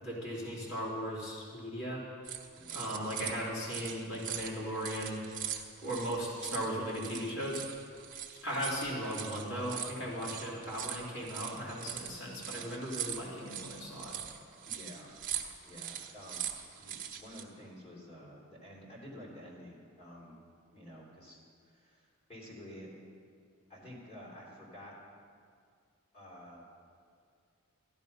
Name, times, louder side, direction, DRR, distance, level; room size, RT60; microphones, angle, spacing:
voice 1, 0.0-2.0 2.7-5.2 5.8-7.6 8.4-14.2, equal, 70° left, -5 dB, 3.0 m, -37 dB
sound 1, 2.2-17.4, right 9 dB, 40° right, 0.9 m, -42 dB
voice 2, 14.7-15.1 15.6-16.5 16.8-20.4 20.7-21.4 21.6-22.0 22.3-22.9 23.7-24.9 26.1-26.7, equal, 30° left, -6 dB, 3.5 m, -50 dB
14.0 x 11.5 x 5.4 m, 2.2 s
head